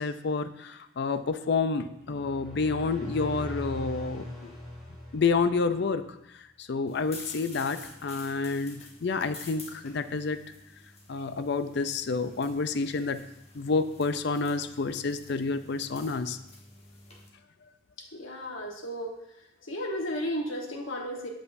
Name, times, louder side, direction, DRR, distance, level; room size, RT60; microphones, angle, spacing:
voice 1, 0.0-4.5 5.1-6.0 6.6-10.4 11.1-13.2 13.5-16.4, left 4 dB, 55° left, 10 dB, 0.5 m, -29 dB
sound 1, 2.0-5.9, left 1 dB, ahead, 2.6 m, -40 dB
sound 2, 6.9-17.3, left 3 dB, 30° left, 1.3 m, -49 dB
voice 2, 18.0-19.2 19.6-21.3, equal, 80° left, 1 dB, 1.3 m, -34 dB
8.1 x 7.9 x 2.6 m, 0.84 s
head